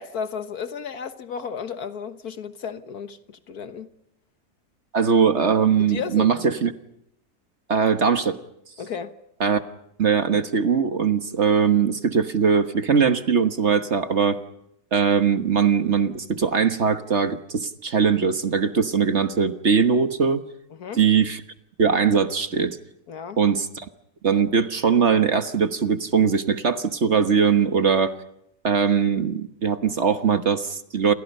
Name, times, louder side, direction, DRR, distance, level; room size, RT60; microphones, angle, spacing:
voice 1, 0.0-3.9 5.8-6.5 8.8-9.1 20.8-21.0 23.1-23.4, left 6 dB, 65° left, 1.8 m, -33 dB
voice 2, 4.9-6.7 7.7-8.4 9.4-9.6 10.0-14.4 14.9-20.4 21.0-21.4 21.8-22.8 23.4-23.8 24.2-28.1 28.6-31.1, right 6 dB, 45° right, 1.5 m, -21 dB
29.5 x 27.5 x 5.5 m
omnidirectional pair, 1.7 m